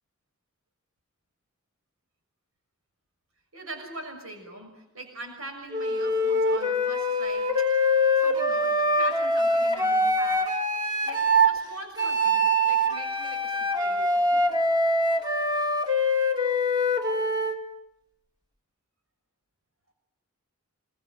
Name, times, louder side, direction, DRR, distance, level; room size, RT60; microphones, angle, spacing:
voice 1, 3.5-7.7 8.2-10.5 11.0-14.6, right 2 dB, 85° right, 4 dB, 6.4 m, -42 dB
Wind instrument woodwind instrument, 5.7-11.6 12.0-17.6, equal, 20° right, 2.8 m, -24 dB
27.5 x 23.0 x 9.2 m, 0.80 s
head